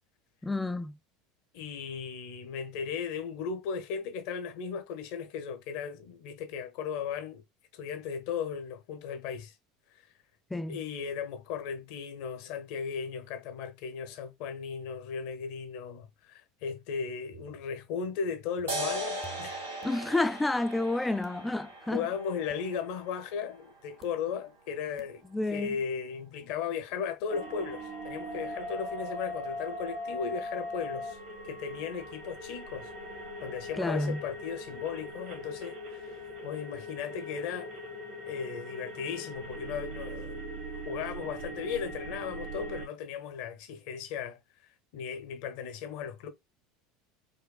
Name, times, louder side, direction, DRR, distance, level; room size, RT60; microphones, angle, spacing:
voice 1, 0.4-1.0 10.5-10.8 19.8-22.1 25.3-25.8 33.7-34.2, left 2 dB, 10° left, 0.3 m, -30 dB
voice 2, 1.5-7.4 7.7-9.5 9.9-10.0 10.7-19.6 21.9-25.2 25.5-31.2 31.4-32.9 33.4-37.7 38.2-40.4 40.9-44.4 44.9-46.3, left 6 dB, 60° left, 0.8 m, -36 dB
sound 1, 17.3-17.8 18.6-20.4 21.2-21.8 22.5-23.1 24.0-24.6 25.0-25.1, right 9 dB, 35° right, 0.7 m, -54 dB
sound 2, 18.7-25.6, equal, 85° right, 1.8 m, -40 dB
sound 3, 27.3-42.9, equal, 60° right, 1.4 m, -40 dB
5.1 x 2.2 x 2.3 m
hypercardioid pair, 75°, 0 cm